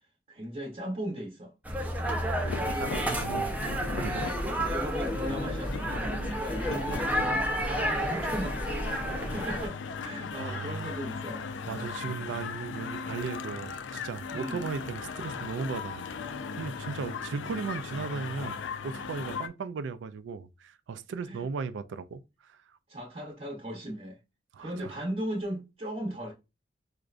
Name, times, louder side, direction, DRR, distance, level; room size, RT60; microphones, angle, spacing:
voice 1, 0.3-1.5 2.6-3.0 4.4-8.9 9.2-11.9 14.3-14.6 17.3-17.4 21.3-21.5 22.9-24.2 24.6-26.3, right 1 dB, 35° right, 0.8 m, -37 dB
sound 1, 1.6-9.7, equal, 10° right, 0.4 m, -31 dB
sound 2, 2.4-19.5, left 5 dB, 85° left, 0.4 m, -38 dB
voice 2, 2.6-3.6 3.9-4.3 10.3-11.0 11.7-16.1 16.6-18.6 18.8-22.8 24.5-24.9, right 5 dB, 90° right, 0.3 m, -37 dB
4.8 x 2.1 x 2.4 m
head